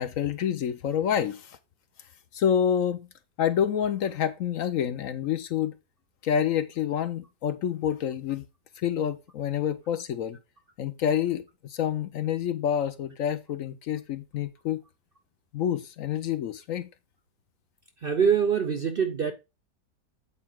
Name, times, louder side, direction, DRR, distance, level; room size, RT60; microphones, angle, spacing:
voice 1, 0.0-1.6 2.3-3.0 3.4-5.7 6.2-8.4 8.8-10.4 10.8-14.8 15.5-16.9, left 9 dB, 65° left, 0.9 m, -28 dB
voice 2, 18.0-19.3, right 7 dB, 55° right, 0.6 m, -24 dB
8.5 x 4.6 x 4.5 m
omnidirectional pair, 1.7 m